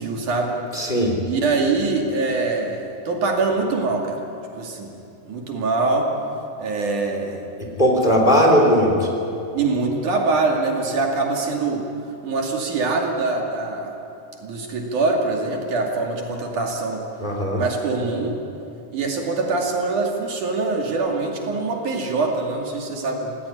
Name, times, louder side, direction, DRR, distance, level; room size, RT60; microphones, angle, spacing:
voice 1, 0.0-0.6 1.3-4.2 4.6-5.0 5.3-6.1 6.6-7.4 9.5-11.9 12.2-13.9 14.4-17.0 17.5-18.4 18.9-23.4, right 3 dB, 65° right, 1 dB, 3.9 m, -23 dB
voice 2, 0.7-1.2 7.6-9.1 17.2-17.6, equal, 15° left, 0 dB, 3.4 m, -18 dB
27.5 x 18.0 x 9.8 m, 2.7 s
omnidirectional pair, 4.0 m